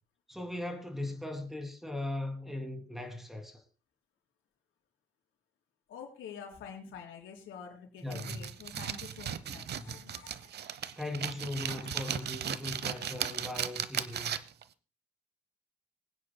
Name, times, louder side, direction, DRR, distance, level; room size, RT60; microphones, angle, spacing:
voice 1, 0.3-3.6 8.0-8.5 9.5-10.0 11.0-14.4, left 2 dB, ahead, 2.8 m, -39 dB
voice 2, 5.9-10.5 11.6-12.1, left 7 dB, 80° left, 3.9 m, -48 dB
sound 1, 8.1-14.6, right 9 dB, 55° right, 0.9 m, -37 dB
24.5 x 9.7 x 2.2 m
cardioid pair, 90°, 20 cm